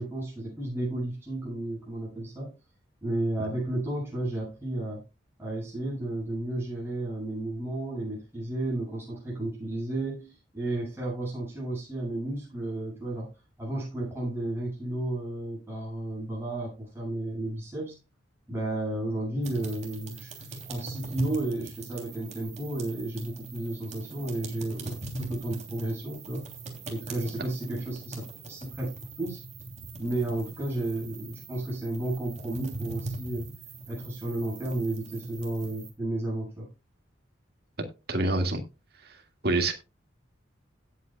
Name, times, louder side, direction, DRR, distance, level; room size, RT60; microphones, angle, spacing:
voice 1, 0.0-2.5 3.0-5.0 5.4-13.3 13.6-18.0 18.5-26.5 26.9-29.4 30.0-33.4 33.9-36.7, right 1 dB, 10° right, -5 dB, 7.3 m, -33 dB
sound 1, 19.4-35.9, right 3 dB, 35° right, 3.1 m, -41 dB
voice 2, 38.1-38.6 39.0-39.2 39.4-39.7, right 2 dB, 55° right, 5 dB, 2.1 m, -26 dB
17.0 x 8.4 x 2.3 m, 0.28 s
head